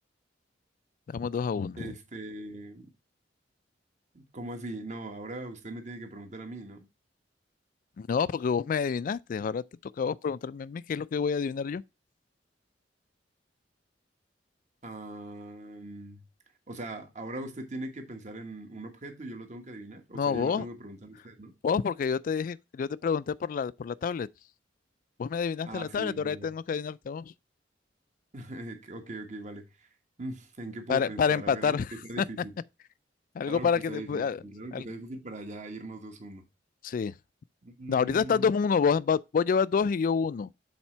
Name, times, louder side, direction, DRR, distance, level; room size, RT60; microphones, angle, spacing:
voice 1, 1.1-1.9 8.0-9.6 10.0-11.8 20.1-20.7 21.6-24.3 25.2-27.3 30.9-32.2 33.3-34.4 34.7-34.8 36.8-37.1 37.9-40.5, left 6 dB, 50° left, 0.3 m, -28 dB
voice 2, 1.8-2.9 4.1-6.9 14.8-16.2 16.7-21.5 25.6-26.5 28.3-29.9 30.2-31.7 32.1-32.6 33.5-36.4 37.6-38.5, right 2 dB, 40° right, 1.4 m, -40 dB
7.2 x 4.2 x 4.4 m
head